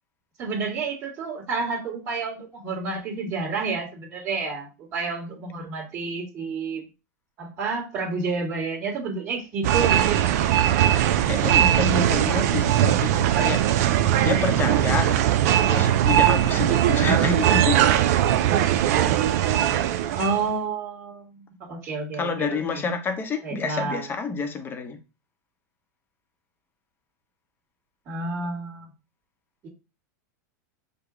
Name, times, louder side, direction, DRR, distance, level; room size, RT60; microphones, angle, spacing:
voice 1, 0.4-6.8 7.4-10.3 17.3-17.6 20.1-22.8 23.4-24.0 28.0-28.9 29.6-29.7, right 4 dB, 35° right, 1.8 m, -30 dB
sound 1, 9.6-20.4, right 11 dB, 60° right, 0.5 m, -20 dB
voice 2, 11.3-13.6 14.2-15.2 15.7-17.8 18.7-19.0 22.1-25.0, left 4 dB, 20° left, 0.8 m, -28 dB
4.9 x 2.3 x 4.9 m
hypercardioid pair, 120°, 10 cm